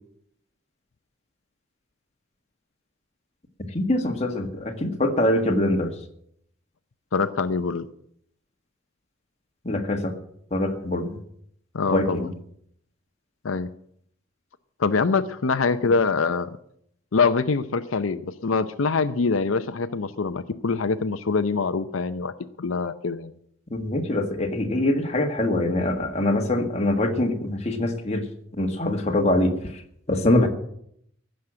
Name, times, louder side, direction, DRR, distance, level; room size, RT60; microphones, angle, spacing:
voice 1, 3.7-5.9 9.6-10.1 10.5-11.2 11.9-12.3 23.7-28.3 28.6-29.7 30.1-30.5, left 1 dB, 30° left, 4 dB, 1.7 m, -23 dB
voice 2, 7.1-7.9 11.7-12.3 13.4-13.7 14.8-16.6 17.1-22.3 22.6-23.3, left 4 dB, 85° left, 11 dB, 0.6 m, -24 dB
15.5 x 6.5 x 8.8 m, 0.69 s
head